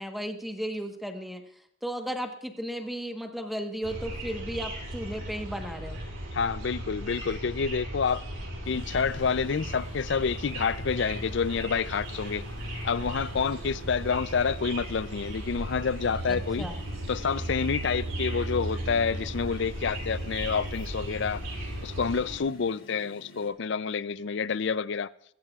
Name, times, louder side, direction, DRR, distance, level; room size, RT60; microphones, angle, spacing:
voice 1, 0.0-1.4 1.8-6.0 16.3-16.7, equal, ahead, 1.2 m, -35 dB
sound 1, 3.8-22.4, right 1 dB, 75° right, 5.7 m, -36 dB
voice 2, 6.3-8.2 8.7-12.4 12.8-16.7 17.1-21.4 21.8-25.1, left 5 dB, 60° left, 0.5 m, -28 dB
sound 2, 8.6-23.5, left 1 dB, 80° left, 2.7 m, -50 dB
22.0 x 15.0 x 2.4 m
head